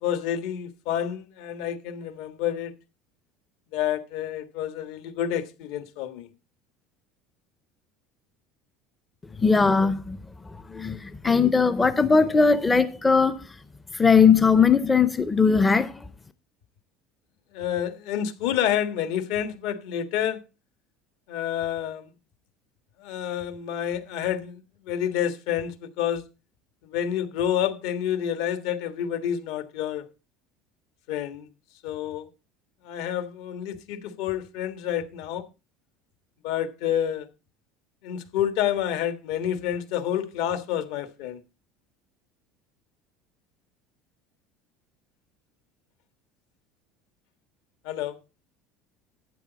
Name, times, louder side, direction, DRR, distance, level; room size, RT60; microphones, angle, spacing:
voice 1, 0.0-2.7 3.7-6.3 17.5-20.4 21.3-22.1 23.0-24.6 24.9-26.2 26.8-30.0 31.1-31.5 31.8-32.3 32.8-35.4 36.4-37.3 38.0-41.4 47.8-48.1, left 10 dB, 70° left, 1.5 m, -28 dB
voice 2, 9.4-10.2 10.7-13.4 13.9-16.1, left 5 dB, 10° left, 0.4 m, -19 dB
12.5 x 8.9 x 4.0 m
cardioid pair, 175°, 0 cm